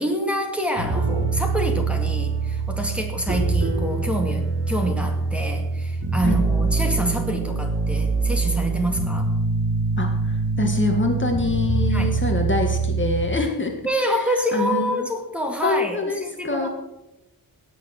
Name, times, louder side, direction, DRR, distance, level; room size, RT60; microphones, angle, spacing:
voice 1, 0.0-9.3 11.9-12.1 13.8-16.7, equal, 5° right, 1 dB, 2.2 m, -27 dB
sound 1, 0.8-13.3, right 4 dB, 35° right, 2.9 m, -24 dB
voice 2, 10.0-13.7 14.0-15.1 15.6-16.7, left 2 dB, 30° left, 3 dB, 1.7 m, -25 dB
17.5 x 7.1 x 6.5 m, 0.94 s
wide cardioid pair, 125°, 37 cm